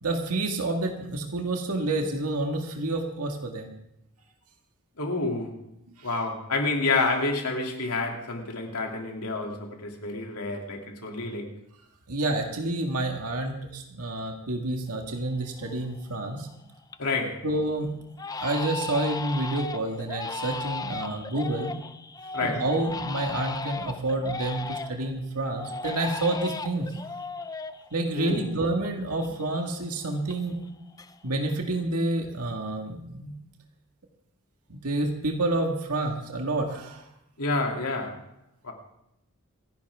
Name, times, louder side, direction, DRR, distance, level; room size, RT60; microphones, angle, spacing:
voice 1, 0.0-3.8 5.9-6.1 12.1-16.5 17.4-17.9 18.4-21.8 22.4-26.9 27.9-30.6 31.2-33.3 34.7-37.0, right 2 dB, 90° right, 2 dB, 1.8 m, -29 dB
voice 2, 5.0-5.6 6.0-11.6 17.0-17.4 22.3-22.6 28.1-28.5 37.4-38.2 38.6-38.7, left 3 dB, 85° left, 1 dB, 2.8 m, -29 dB
Crying sobbing, 15.0-15.1 15.6-16.0 16.4-17.3 17.6-17.7 18.2-25.1 25.6-28.9 29.2-30.7 30.9-31.5, left 3 dB, 15° left, 0.5 m, -36 dB
27.0 x 10.5 x 3.6 m, 0.82 s
head